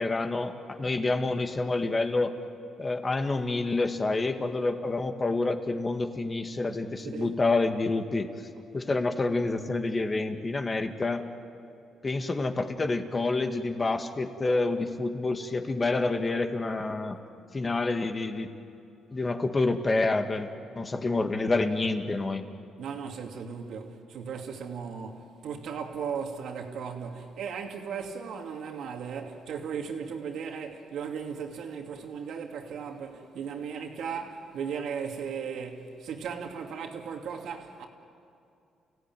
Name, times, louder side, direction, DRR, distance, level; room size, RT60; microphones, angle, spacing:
voice 1, 0.0-2.3 2.8-8.3 8.7-11.2 12.0-17.2 17.5-18.5 19.1-20.5 20.8-22.4, left 3 dB, 30° left, 1.9 m, -28 dB
voice 2, 22.8-37.9, right 6 dB, 75° right, 2.7 m, -36 dB
30.0 x 16.5 x 9.3 m
cardioid pair, 90°, 0 cm